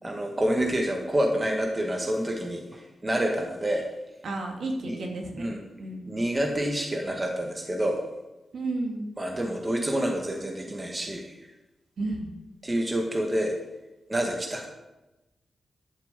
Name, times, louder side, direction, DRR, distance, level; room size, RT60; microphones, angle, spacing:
voice 1, 0.0-3.9 4.8-5.0 5.4-5.6 6.1-8.0 9.2-11.4 12.6-13.6 14.1-14.7, right 1 dB, 15° right, 2 dB, 1.9 m, -28 dB
voice 2, 4.2-5.5 5.8-6.0 8.5-9.1 12.0-12.3, right 2 dB, 60° right, 1 dB, 3.0 m, -32 dB
12.5 x 7.7 x 8.3 m, 0.99 s
wide cardioid pair, 155°, 0 cm